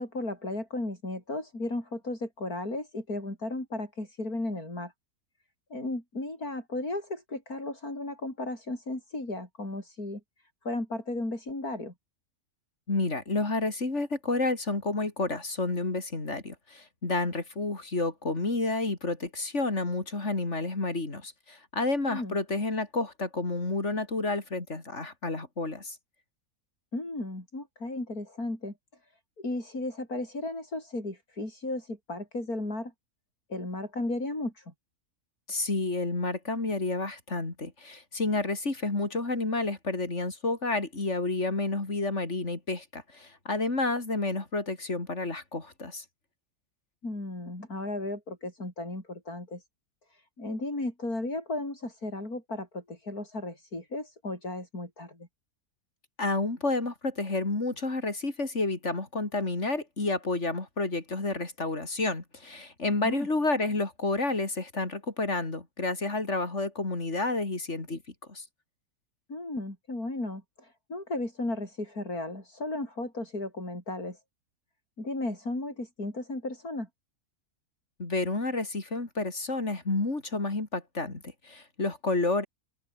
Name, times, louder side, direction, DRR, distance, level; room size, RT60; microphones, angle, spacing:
voice 1, 0.0-4.9 5.7-10.2 10.6-11.9 22.1-22.4 26.9-28.7 29.4-32.9 33.5-34.7 47.0-49.6 50.1-55.3 63.0-63.3 69.3-74.2 75.0-76.9, left 2 dB, 70° left, 7.8 m, -35 dB
voice 2, 12.9-26.0 35.5-46.0 56.2-68.0 68.3-68.4 78.0-82.4, left 2 dB, 50° left, 4.0 m, -30 dB
omnidirectional pair, 1.6 m